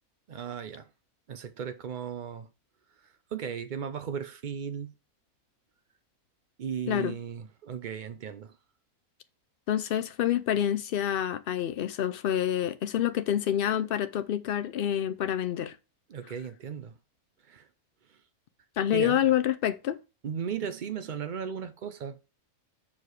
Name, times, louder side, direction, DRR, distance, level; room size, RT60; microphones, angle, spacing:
voice 1, 0.3-0.9 1.3-2.5 3.0-4.9 6.6-8.6 16.1-16.9 17.4-17.7 18.1-18.2 18.9-19.2 20.2-22.2, right 7 dB, 70° right, 0.4 m, -36 dB
voice 2, 9.7-15.8 18.8-20.0, left 10 dB, 90° left, 0.4 m, -27 dB
7.3 x 4.7 x 4.7 m
omnidirectional pair, 1.6 m